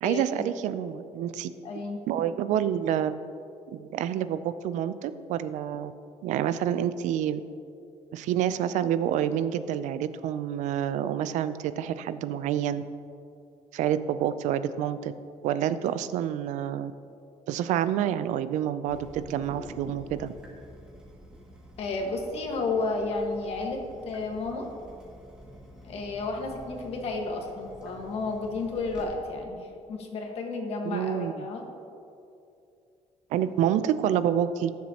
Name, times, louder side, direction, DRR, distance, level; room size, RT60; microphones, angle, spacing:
voice 1, 0.0-1.5 2.1-3.2 3.7-5.9 6.2-7.4 8.1-12.8 13.7-15.1 15.4-16.9 17.5-20.3 30.8-31.5 33.3-34.7, right 10 dB, 80° right, 13 dB, 0.5 m, -28 dB
voice 2, 1.6-2.0 21.8-23.8 24.0-24.7 25.8-29.6 29.9-31.6, left 3 dB, 55° left, 2 dB, 1.6 m, -32 dB
Water tap faucet / Drip, 18.9-29.0, equal, 5° right, 2.2 m, -48 dB
19.0 x 7.2 x 2.9 m, 2.6 s
cardioid pair, 150°, 12 cm